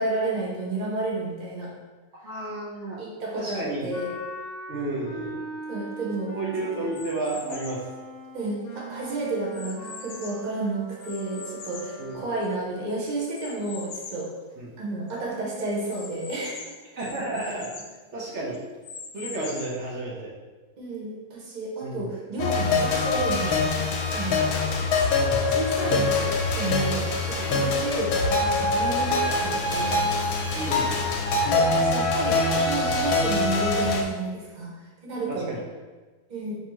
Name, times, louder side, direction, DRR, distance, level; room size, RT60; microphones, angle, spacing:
voice 1, 0.0-1.7 2.2-2.3 3.0-4.1 5.7-6.4 6.8-6.9 8.3-14.3 14.8-16.6 20.8-25.1 25.5-30.0 31.4-34.7 35.0-35.5 36.3-36.6, right 2 dB, 75° right, -4 dB, 0.4 m, -31 dB
voice 2, 2.2-3.0 3.3-3.9 4.7-5.4 6.3-7.8 12.0-12.2 14.6-14.7 16.9-18.6 19.1-20.3 21.8-22.1 25.2-25.6 25.8-26.1 30.5-30.9 35.3-35.6, right 2 dB, 50° right, -5 dB, 0.8 m, -32 dB
Wind instrument woodwind instrument, 3.9-12.5, right 1 dB, 50° left, 0.7 m, -40 dB
sound 1, 6.9-7.9 8.5-10.5 11.0-12.7 13.3-14.3 14.8-14.9 15.1-15.2 15.9-18.0 18.5-19.9, left 5 dB, 75° left, 0.9 m, -42 dB
sound 2, 22.4-34.0, left 3 dB, 90° left, 1.4 m, -24 dB
5.7 x 2.8 x 3.0 m, 1.3 s
omnidirectional pair, 2.2 m